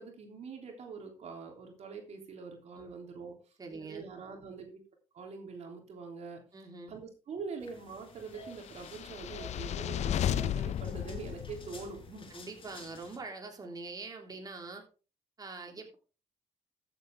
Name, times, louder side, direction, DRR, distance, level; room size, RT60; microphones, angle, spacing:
voice 1, 0.0-4.8 5.1-6.4 6.9-12.3, right 5 dB, 60° right, 2 dB, 3.4 m, -44 dB
voice 2, 3.6-4.1 6.5-7.0 12.3-14.9 15.4-16.0, right 3 dB, 30° right, 2 dB, 3.3 m, -44 dB
sound 1, 7.6-13.2, left 3 dB, 45° left, 4.2 m, -53 dB
sound 2, 8.7-12.1, left 10 dB, 65° left, 0.6 m, -34 dB
14.0 x 8.3 x 3.6 m, 0.34 s
cardioid pair, 75°, 12 cm